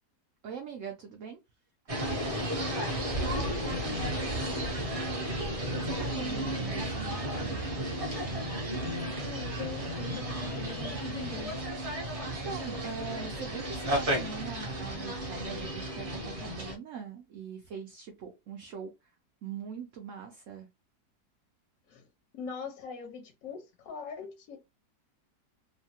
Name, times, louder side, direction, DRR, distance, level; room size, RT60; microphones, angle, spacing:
voice 1, 0.4-1.4 5.2-7.7 12.2-19.1 19.4-20.7, right 6 dB, 70° right, 0.7 m, -42 dB
sound 1, 1.9-16.8, right 1 dB, 35° right, 0.5 m, -33 dB
voice 2, 3.0-4.9 9.2-11.5 21.9-22.1 22.3-24.6, left 5 dB, 65° left, 0.9 m, -43 dB
3.1 x 2.2 x 2.7 m
omnidirectional pair, 1.8 m